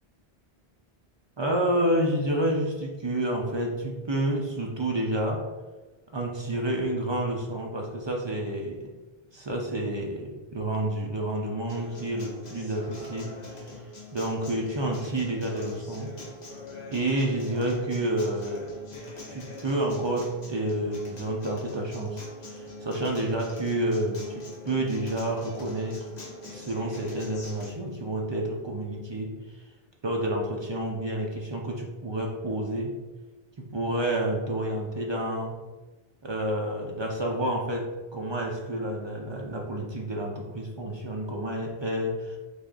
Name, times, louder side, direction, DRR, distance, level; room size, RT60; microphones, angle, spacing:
voice 1, 1.4-5.4 6.1-8.9 9.3-13.3 14.1-16.1 16.9-18.7 19.3-26.0 26.5-29.3 30.0-32.9 33.6-35.6 36.2-42.4, right 1 dB, 45° right, 0 dB, 0.3 m, -29 dB
Acoustic guitar, 11.7-27.7, left 1 dB, 45° left, 0.8 m, -42 dB
3.4 x 2.4 x 3.6 m, 1.2 s
omnidirectional pair, 1.0 m